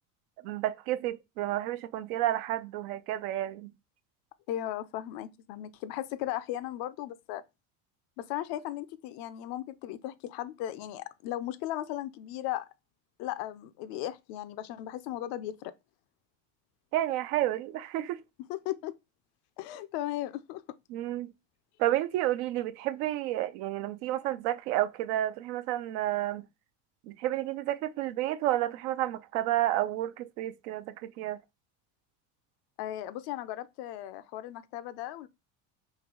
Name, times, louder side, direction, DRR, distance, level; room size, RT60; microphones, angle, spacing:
voice 1, 0.4-3.7 16.9-18.2 20.9-21.3 21.8-26.5 27.1-31.4, right 14 dB, 70° right, 0.5 m, -31 dB
voice 2, 4.5-7.4 8.2-12.7 13.2-15.7 18.5-19.0 19.6-20.6 32.8-35.3, left 13 dB, 55° left, 0.5 m, -36 dB
3.2 x 2.7 x 3.7 m
supercardioid pair, 100°, 44 cm